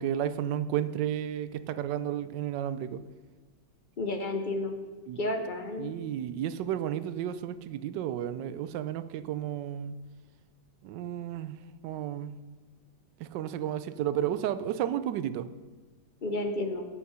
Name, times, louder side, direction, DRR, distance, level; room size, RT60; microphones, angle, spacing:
voice 1, 0.0-3.0 5.1-5.2 5.8-10.0 10.8-12.3 13.2-15.5, right 10 dB, 80° right, 14 dB, 1.2 m, -32 dB
voice 2, 4.0-4.7 5.2-5.9 16.2-16.8, left 2 dB, 50° left, 5 dB, 0.5 m, -31 dB
9.7 x 8.4 x 5.6 m, 1.3 s
omnidirectional pair, 2.0 m